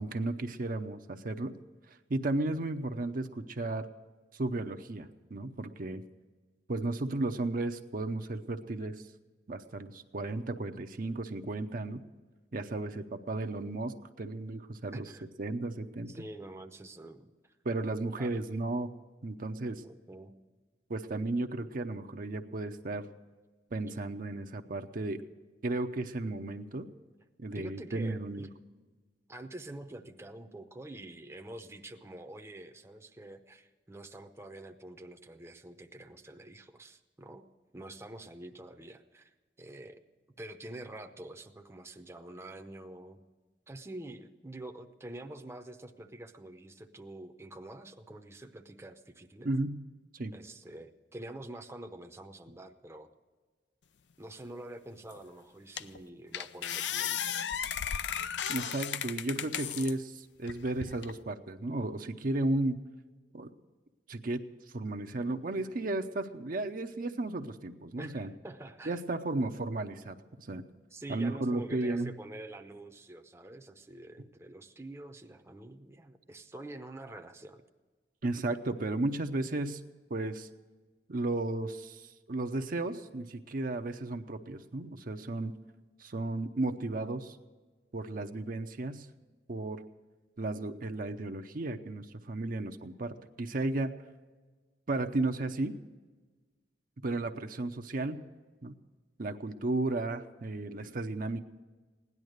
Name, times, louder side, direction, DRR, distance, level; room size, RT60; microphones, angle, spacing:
voice 1, 0.0-1.5 2.1-3.9 4.3-6.0 6.7-9.0 9.5-12.0 12.5-15.0 15.4-16.1 17.6-18.9 19.2-19.8 20.9-23.1 23.7-25.2 25.6-26.9 27.4-28.5 49.4-49.8 50.1-50.3 58.5-62.8 63.3-63.5 64.1-64.4 64.7-68.3 68.9-70.6 71.1-72.1 78.2-79.8 80.1-80.5 81.1-85.5 86.0-87.4 87.9-89.1 89.5-89.8 90.4-93.9 94.9-95.7 97.0-98.2 98.6-98.7 99.2-101.4, right 2 dB, 55° right, 6 dB, 0.7 m, -34 dB
voice 2, 14.9-15.3 16.1-17.6 18.2-18.3 19.8-20.3 27.5-28.5 29.3-37.4 37.7-40.0 40.4-43.2 43.7-49.5 50.3-53.1 54.2-57.5 68.0-69.0 70.9-77.6, right 1 dB, 15° right, 5 dB, 0.7 m, -47 dB
sound 1, 55.1-55.2 55.8-56.0 56.3-59.9 60.5-61.1, left 8 dB, 90° left, 0.5 m, -35 dB
17.0 x 11.0 x 6.5 m, 1.3 s
head